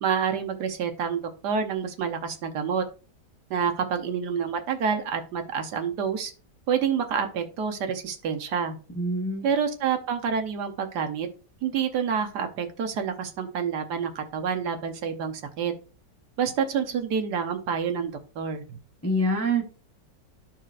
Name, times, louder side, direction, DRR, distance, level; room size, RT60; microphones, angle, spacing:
voice 1, 0.0-2.8 3.5-6.3 6.7-8.8 9.4-11.3 11.6-15.7 16.4-18.8, right 7 dB, 70° right, 6 dB, 1.4 m, -28 dB
voice 2, 9.0-9.4 19.0-19.6, right 1 dB, 20° left, 1 dB, 0.4 m, -25 dB
13.0 x 4.4 x 2.4 m, 0.37 s
omnidirectional pair, 1.9 m